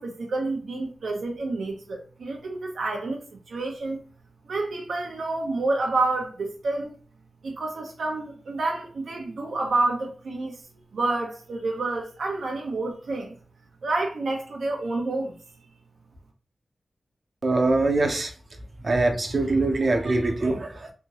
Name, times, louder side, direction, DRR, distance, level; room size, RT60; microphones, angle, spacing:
voice 1, 0.0-4.0 4.4-6.9 7.4-10.6 10.9-13.3 13.8-15.3, right 2 dB, 85° right, 1.0 m, -29 dB
voice 2, 17.4-18.3 18.8-20.9, right 2 dB, 50° right, 0.8 m, -23 dB
3.4 x 2.8 x 2.9 m
wide cardioid pair, 75°, 0 cm